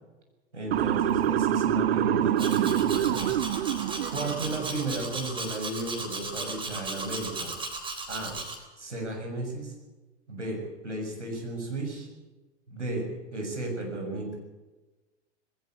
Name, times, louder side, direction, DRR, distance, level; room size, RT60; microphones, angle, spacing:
voice 1, 0.5-3.4 4.1-7.5 8.1-8.4 8.8-9.7 10.3-12.1 12.7-14.4, right 2 dB, 80° right, 1 dB, 7.1 m, -34 dB
Motor vehicle (road) / Siren, 0.7-4.8, right 11 dB, 55° right, 0.9 m, -26 dB
Domestic sounds home sounds, 2.4-8.6, right 3 dB, 15° right, 3.8 m, -36 dB
20.0 x 17.5 x 8.5 m, 1.1 s
figure-of-eight pair, 95°, 35 cm